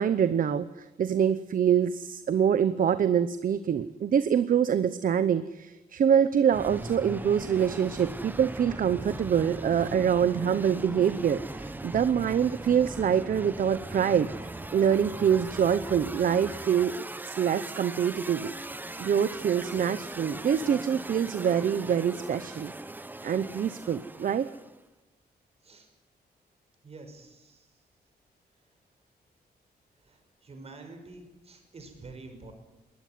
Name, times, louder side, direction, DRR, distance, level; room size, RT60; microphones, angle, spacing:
voice 1, 0.0-14.3 14.7-18.5 19.0-22.7 23.2-24.5, right 8 dB, 55° right, 13 dB, 0.9 m, -25 dB
sound 1, 6.5-24.8, right 2 dB, 10° right, 0.9 m, -39 dB
voice 2, 26.8-27.8 30.0-32.5, right 3 dB, 40° right, 5 dB, 5.6 m, -48 dB
22.0 x 20.0 x 9.5 m, 1.0 s
wide cardioid pair, 160°, 17 cm